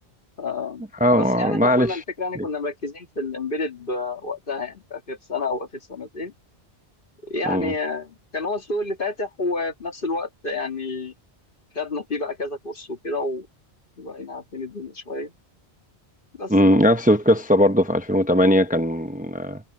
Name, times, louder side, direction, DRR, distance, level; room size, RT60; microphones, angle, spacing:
voice 1, 0.4-0.8 1.1-6.3 7.2-11.1 11.7-13.5 14.0-15.3 16.4-16.8, left 2 dB, 55° left, 2.0 m, -29 dB
voice 2, 1.0-2.0 2.4-2.5 7.5-7.7 16.5-19.6, equal, 10° right, 0.8 m, -19 dB
omnidirectional pair, 1.1 m